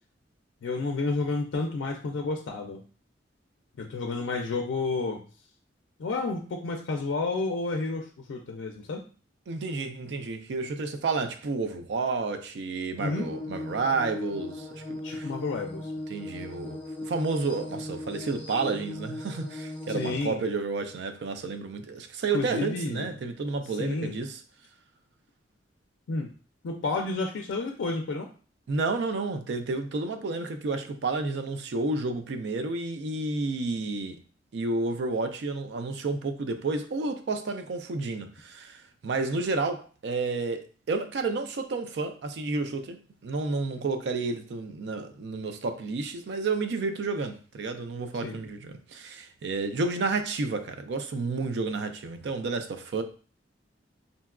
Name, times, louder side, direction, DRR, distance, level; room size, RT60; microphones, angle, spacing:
voice 1, 0.6-2.8 3.8-5.2 6.0-9.0 13.0-13.3 15.0-15.9 19.9-20.4 22.3-23.2 23.8-24.1 26.1-26.3 26.6-28.3 48.2-48.4, left 3 dB, 85° left, 0.4 m, -30 dB
voice 2, 9.5-15.3 16.1-24.4 28.7-34.2 34.5-43.0 43.2-53.0, right 3 dB, 65° right, 0.4 m, -31 dB
sound 1, 13.0-20.2, left 2 dB, 10° left, 0.5 m, -38 dB
3.8 x 2.2 x 2.3 m
head